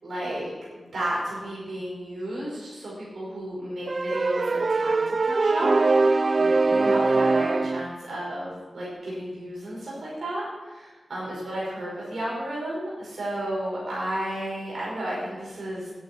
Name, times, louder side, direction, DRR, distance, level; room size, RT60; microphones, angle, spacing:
voice 1, 0.0-15.9, right 1 dB, 70° right, -7 dB, 5.3 m, -33 dB
sound 1, 3.9-7.9, right 3 dB, 50° right, 0.4 m, -22 dB
10.0 x 8.3 x 8.5 m, 1.3 s
cardioid pair, 60°, 0 cm